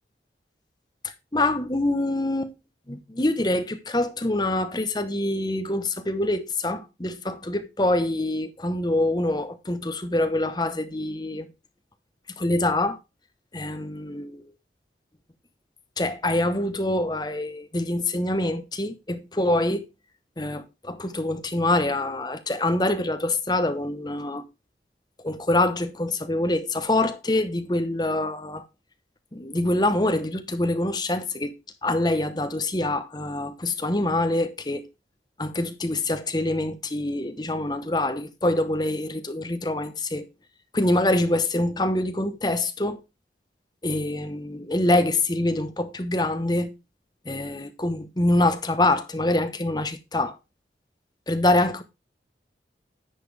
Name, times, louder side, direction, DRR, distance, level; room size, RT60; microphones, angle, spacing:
voice 1, 1.3-2.5 2.9-11.5 12.4-13.0 13.5-14.4 16.0-19.9 20.4-24.4 25.2-28.6 29.3-31.5 31.8-34.8 35.4-40.3 40.7-43.0 43.8-46.7 47.2-50.4 51.3-51.8, left 1 dB, 25° left, 1.1 m, -25 dB
10.0 x 7.6 x 3.4 m
head